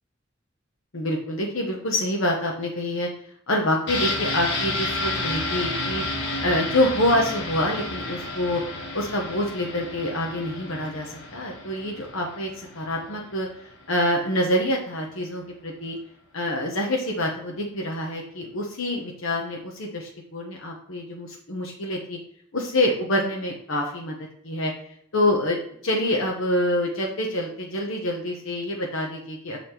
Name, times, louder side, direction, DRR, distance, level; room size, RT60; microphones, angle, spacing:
voice 1, 0.9-3.1 3.5-6.0 6.4-8.6 8.9-13.5 13.9-16.0 16.3-22.2 22.5-24.1 24.4-24.7 25.1-25.6 25.8-29.6, left 1 dB, 85° left, -1 dB, 1.1 m, -26 dB
sound 1, 3.9-13.5 13.8-13.9, left 2 dB, 60° left, 2.2 m, -31 dB
7.0 x 4.3 x 4.4 m, 0.68 s
head